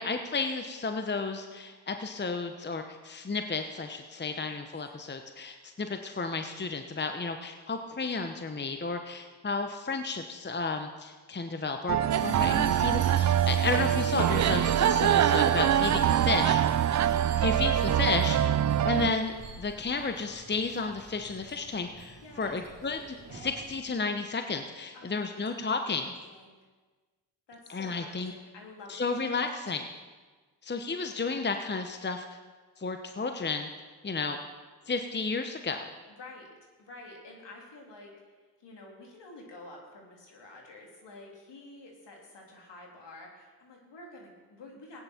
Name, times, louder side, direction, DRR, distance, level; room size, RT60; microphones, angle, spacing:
voice 1, 0.0-16.6 17.0-17.1 17.4-18.6 18.8-26.1 27.7-28.3 28.9-29.8 30.6-32.4 32.8-33.7 34.0-34.4 34.9-35.8, left 4 dB, 25° left, 6 dB, 1.0 m, -32 dB
voice 2, 4.3-4.7 12.0-12.5 16.9-17.7 22.2-22.6 24.9-26.6 27.5-29.4 36.1-36.5 36.8-38.1 38.6-45.0, left 2 dB, 65° left, -1 dB, 3.3 m, -50 dB
sound 1, 11.9-19.1, right 10 dB, 40° right, 0.5 m, -24 dB
sound 2, 12.1-23.8, right 4 dB, 70° right, 2.9 m, -45 dB
16.5 x 9.6 x 4.4 m, 1.4 s
supercardioid pair, 50°, 46 cm